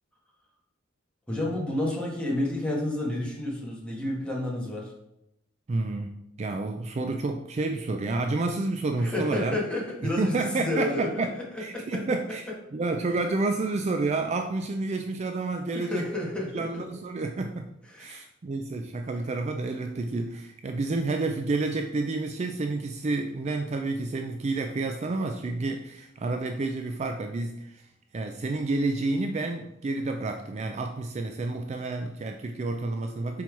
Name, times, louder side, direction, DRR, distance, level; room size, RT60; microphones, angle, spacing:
voice 1, 1.3-4.9 9.0-11.1 11.7-12.0 15.7-16.8 17.9-18.2, left 1 dB, 5° left, -4 dB, 1.6 m, -30 dB
voice 2, 5.7-9.6 10.0-12.4 12.7-16.1 16.5-17.7 18.0-27.8 28.1-33.4, right 3 dB, 35° right, 5 dB, 0.4 m, -29 dB
5.5 x 4.5 x 4.6 m, 0.83 s
head